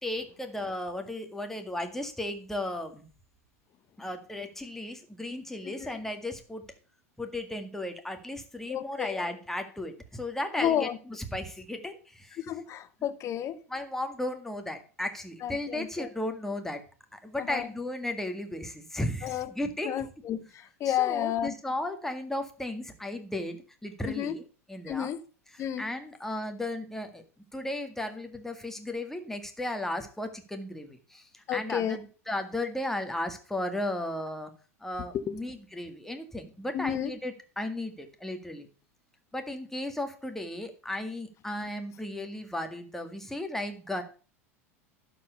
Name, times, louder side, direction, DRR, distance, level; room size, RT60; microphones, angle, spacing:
voice 1, 0.0-3.1 4.0-6.7 7.2-12.4 13.7-16.8 17.1-20.0 20.9-24.4 24.7-25.1 25.5-27.2 27.5-34.5 34.8-38.7 39.3-44.0, left 1 dB, 5° left, 1.9 m, -35 dB
voice 2, 8.7-9.3 10.5-11.0 12.4-13.6 15.4-16.1 17.4-17.7 19.2-19.5 19.8-21.5 24.0-24.4 24.9-25.2 25.6-25.8 31.5-32.0 35.1-35.3 36.7-37.1, left 10 dB, 40° left, 0.9 m, -31 dB
11.5 x 4.7 x 6.8 m
hypercardioid pair, 85°, 8 cm